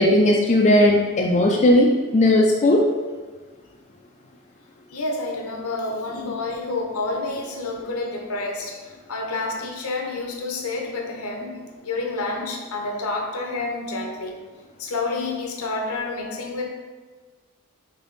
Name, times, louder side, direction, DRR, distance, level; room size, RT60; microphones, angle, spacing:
voice 1, 0.0-2.9, left 1 dB, 30° left, 0 dB, 0.4 m, -17 dB
voice 2, 4.9-8.8 9.1-14.4 14.8-16.7, left 3 dB, 70° left, 2 dB, 0.7 m, -29 dB
3.6 x 3.4 x 4.0 m, 1.4 s
head